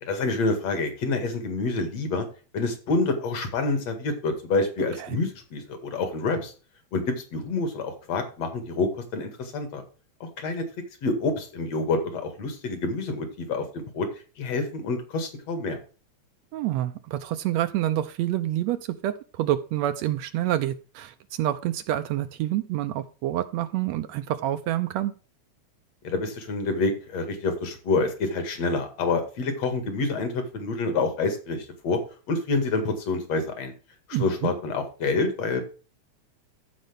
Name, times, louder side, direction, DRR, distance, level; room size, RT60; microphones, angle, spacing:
voice 1, 0.0-2.2 2.5-6.5 6.9-7.0 7.3-9.8 10.2-10.6 11.0-14.1 14.4-15.8 26.0-32.0 32.3-33.7 34.1-35.6, left 3 dB, 60° left, 6 dB, 3.0 m, -27 dB
voice 2, 16.5-25.1 34.1-34.5, right 13 dB, 80° right, 10 dB, 1.8 m, -27 dB
15.0 x 5.2 x 3.4 m, 0.36 s
omnidirectional pair, 3.3 m